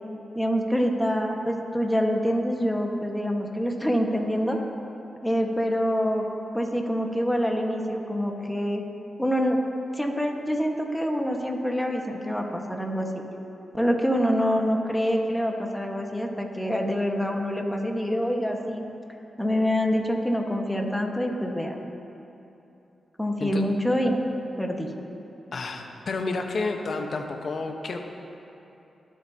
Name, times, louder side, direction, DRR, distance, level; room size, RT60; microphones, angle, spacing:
voice 1, 0.3-4.6 5.2-6.3 6.5-8.8 9.2-9.6 9.9-13.3 13.7-18.9 19.4-21.8 23.2-24.2 24.6-24.9, equal, 5° left, 1 dB, 1.5 m, -26 dB
voice 2, 25.5-28.1, left 3 dB, 65° left, 4 dB, 1.1 m, -30 dB
20.0 x 8.0 x 2.9 m, 2.8 s
cardioid pair, 50°, 0 cm